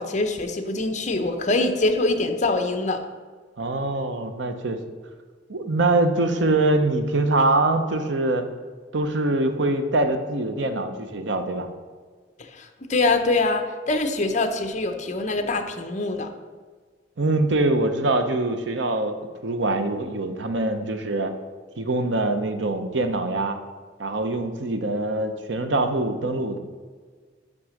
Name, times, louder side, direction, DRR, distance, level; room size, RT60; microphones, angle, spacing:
voice 1, 0.0-3.0 12.5-16.3, left 2 dB, 40° left, 7 dB, 0.8 m, -24 dB
voice 2, 3.6-4.8 5.5-8.5 8.9-11.7 17.2-19.2 19.4-21.3 21.8-23.6 24.0-26.6, right 2 dB, 85° right, 8 dB, 0.8 m, -23 dB
6.1 x 5.9 x 6.4 m, 1.5 s
head